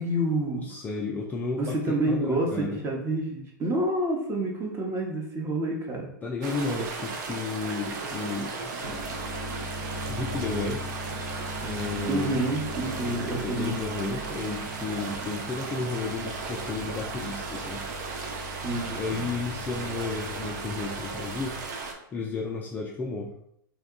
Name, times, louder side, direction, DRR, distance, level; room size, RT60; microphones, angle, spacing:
voice 1, 0.0-0.6 1.6-6.1 12.1-13.7 18.6-19.3, right 1 dB, 20° right, 0 dB, 0.8 m, -28 dB
voice 2, 0.5-2.8 6.2-9.0 10.1-10.9 11.6-12.4 13.1-17.9 18.9-21.6 22.1-23.3, left 3 dB, 15° left, -1 dB, 0.3 m, -33 dB
sound 1, 6.4-21.9, right 4 dB, 55° right, 0.6 m, -36 dB
sound 2, 8.8-21.6, left 1 dB, 85° right, 1.0 m, -40 dB
2.9 x 2.2 x 3.7 m, 0.74 s
hypercardioid pair, 120°, 11 cm